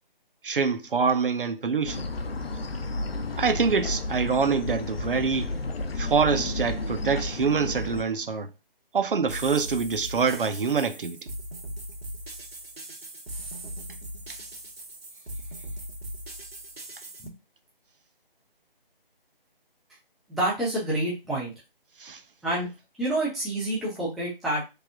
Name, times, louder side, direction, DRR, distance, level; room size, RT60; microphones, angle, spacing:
voice 1, 0.4-2.0 3.4-5.5 6.0-8.5 8.9-11.2 22.0-22.2, right 5 dB, 65° right, 0.7 m, -25 dB
sound 1, 1.9-8.0, left 2 dB, 80° left, 0.7 m, -32 dB
sound 2, 9.3-17.3, right 1 dB, 90° right, 1.2 m, -39 dB
voice 2, 20.3-21.5 22.4-22.7 23.0-24.6, right 1 dB, ahead, 0.4 m, -28 dB
3.3 x 2.5 x 3.4 m
figure-of-eight pair, 155°, 29 cm